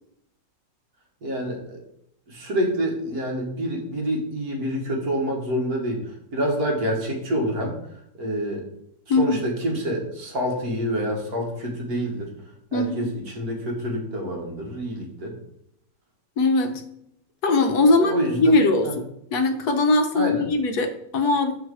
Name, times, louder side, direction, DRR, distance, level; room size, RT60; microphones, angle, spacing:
voice 1, 1.2-1.8 2.3-7.8 8.2-8.6 9.1-12.3 12.7-15.4 17.9-18.6 18.8-18.9 20.1-20.5, equal, 60° right, 0 dB, 1.8 m, -27 dB
voice 2, 12.7-13.1 16.4-16.8 17.4-18.9 19.3-21.6, left 2 dB, 70° left, 6 dB, 1.2 m, -20 dB
6.2 x 4.7 x 4.7 m, 0.75 s
omnidirectional pair, 1.9 m